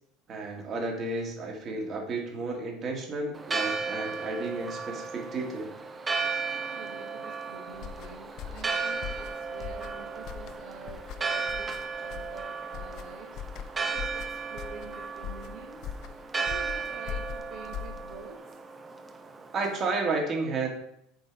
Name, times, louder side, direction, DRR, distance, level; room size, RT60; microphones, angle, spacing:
voice 1, 0.3-5.7 19.5-20.7, right 3 dB, 40° right, 1 dB, 1.9 m, -32 dB
Church bell, 3.3-20.0, right 4 dB, 20° right, 0.7 m, -35 dB
voice 2, 6.5-18.6, right 4 dB, 65° right, 0 dB, 1.3 m, -47 dB
sound 1, 7.7-18.4, left 8 dB, 55° left, 0.6 m, -41 dB
7.8 x 3.8 x 4.7 m, 0.75 s
hypercardioid pair, 95°, 0 cm